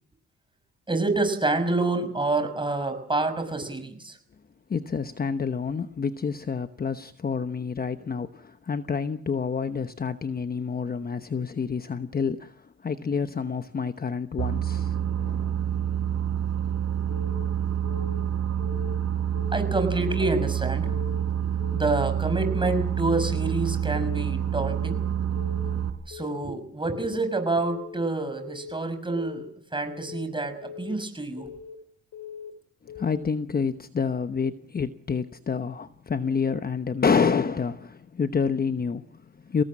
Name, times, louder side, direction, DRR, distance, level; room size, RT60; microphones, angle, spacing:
voice 1, 0.9-4.2 19.5-21.0 21.7-25.0 26.1-29.5 29.7-31.5, right 2 dB, 15° right, 5.8 m, -27 dB
voice 2, 4.7-15.5 32.8-39.6, left 5 dB, 30° left, 1.0 m, -28 dB
Boat Water vehicle, 14.4-25.9, right 9 dB, 60° right, 4.2 m, -27 dB
Keyboard (musical) / Alarm, 17.1-17.5 17.8-18.2 18.6-19.0 19.3-19.7 20.1-20.5 20.8-21.2 21.6-22.0 22.3-22.7 23.1-23.5 23.8-24.2 24.6-25.0 25.4-25.7 26.1-26.5 26.9-27.2 27.6-28.0 28.4-28.7 29.1-29.5 29.9-30.2 30.6-31.0 31.4-31.7 32.1-32.5 32.9-33.3, left 8 dB, 80° left, 5.3 m, -41 dB
24.0 x 18.0 x 7.5 m
cardioid pair, 90°, 30 cm